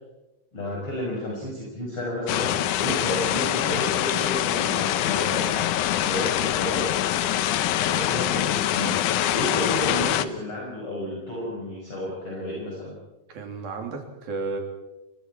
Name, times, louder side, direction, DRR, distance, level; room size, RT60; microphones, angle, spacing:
voice 1, 0.5-5.6 6.0-6.9 7.8-9.0 9.3-12.9, left 1 dB, 30° left, -4 dB, 6.1 m, -31 dB
sound 1, 2.3-10.2, left 12 dB, 85° left, 1.7 m, -24 dB
voice 2, 13.3-14.6, right 3 dB, 65° right, 3 dB, 4.8 m, -33 dB
30.0 x 23.0 x 4.6 m, 0.99 s
omnidirectional pair, 4.6 m